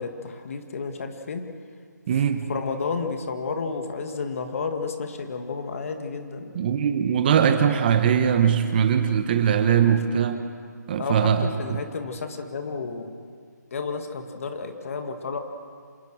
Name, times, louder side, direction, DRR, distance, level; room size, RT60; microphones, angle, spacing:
voice 1, 0.0-1.5 2.5-6.5 11.0-13.1 13.7-15.4, left 4 dB, 50° left, 6 dB, 2.1 m, -31 dB
voice 2, 2.1-2.5 6.5-10.4 10.9-11.8, right 8 dB, 30° right, 9 dB, 1.1 m, -21 dB
27.0 x 19.5 x 6.3 m, 2.1 s
hypercardioid pair, 160°, 10 cm